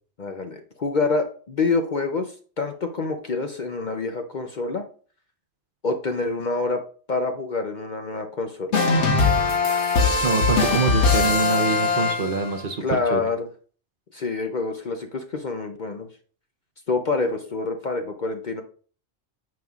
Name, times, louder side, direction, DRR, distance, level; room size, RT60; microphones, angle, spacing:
voice 1, 0.2-4.8 5.8-6.8 7.1-8.8 12.8-13.5 14.1-16.1 16.9-18.6, left 3 dB, 45° left, 5 dB, 0.7 m, -27 dB
sound 1, 8.7-12.6, left 4 dB, 65° left, 1.4 m, -21 dB
voice 2, 10.2-13.2, right 4 dB, 50° right, 3 dB, 0.9 m, -25 dB
9.3 x 7.0 x 2.4 m, 0.42 s
omnidirectional pair, 1.3 m